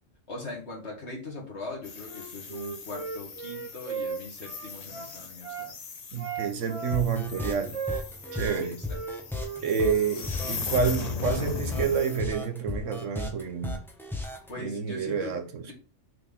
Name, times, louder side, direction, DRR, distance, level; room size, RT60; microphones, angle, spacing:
voice 1, 0.3-5.7 8.5-9.0 9.8-9.9 14.5-15.4 15.6-15.7, left 2 dB, 60° left, 2.5 m, -41 dB
sound 1, 1.8-12.2, left 5 dB, 40° left, 0.7 m, -38 dB
Wind instrument woodwind instrument, 2.0-5.7 6.2-8.6 8.9-10.2, right 6 dB, 35° right, 0.7 m, -37 dB
voice 2, 6.1-7.8 8.3-8.8 9.6-13.8 14.6-15.7, right 6 dB, 75° right, 1.3 m, -28 dB
sound 2, 6.9-14.5, left 2 dB, ahead, 1.1 m, -35 dB
6.4 x 4.4 x 3.7 m
omnidirectional pair, 1.3 m